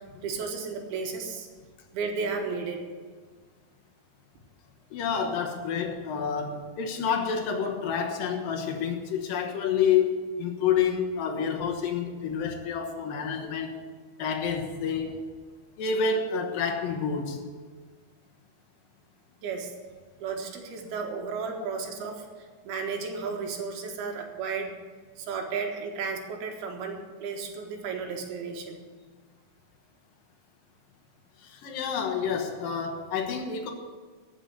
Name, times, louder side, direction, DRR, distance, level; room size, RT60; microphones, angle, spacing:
voice 1, 0.2-1.5 1.9-2.8 19.4-19.7 20.2-24.7 25.2-28.8, right 5 dB, 80° right, 3 dB, 3.4 m, -33 dB
voice 2, 4.9-13.8 14.2-15.2 15.8-17.4 31.4-33.7, left 6 dB, 70° left, 2 dB, 2.8 m, -28 dB
14.0 x 6.7 x 8.2 m, 1.5 s
omnidirectional pair, 4.4 m